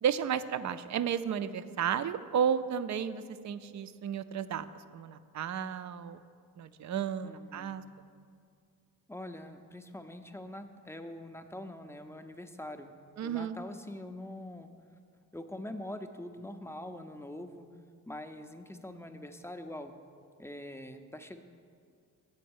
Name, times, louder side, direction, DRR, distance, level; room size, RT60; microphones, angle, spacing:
voice 1, 0.0-4.7 4.9-6.2 6.6-7.8 13.2-13.6, right 8 dB, 45° right, 12 dB, 0.4 m, -33 dB
voice 2, 7.2-7.8 9.1-12.9 13.2-14.7 15.3-17.7 18.1-19.9 20.4-21.4, left 1 dB, 5° left, 7 dB, 0.5 m, -44 dB
7.6 x 4.5 x 6.9 m, 2.2 s
hypercardioid pair, 40°, 43 cm